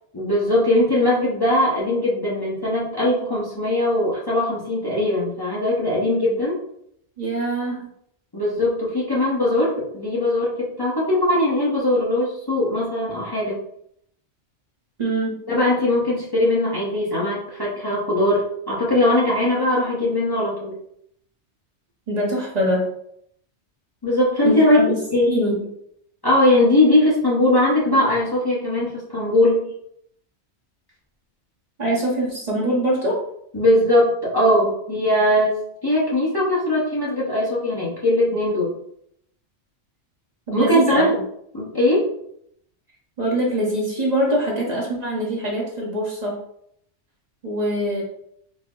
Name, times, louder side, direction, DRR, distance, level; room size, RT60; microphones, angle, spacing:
voice 1, 0.1-6.6 8.3-13.6 15.5-20.8 24.0-24.8 25.1-25.4 26.2-29.7 33.5-35.5 35.8-38.7 40.5-41.2 41.5-42.1, left 1 dB, 25° left, -6 dB, 0.7 m, -20 dB
voice 2, 7.2-7.9 15.0-15.4 22.1-22.9 24.4-25.7 31.8-33.2 40.5-41.1 43.2-46.4 47.4-48.0, right 1 dB, 40° right, -3 dB, 0.8 m, -23 dB
4.1 x 2.0 x 3.6 m, 0.72 s
omnidirectional pair, 1.2 m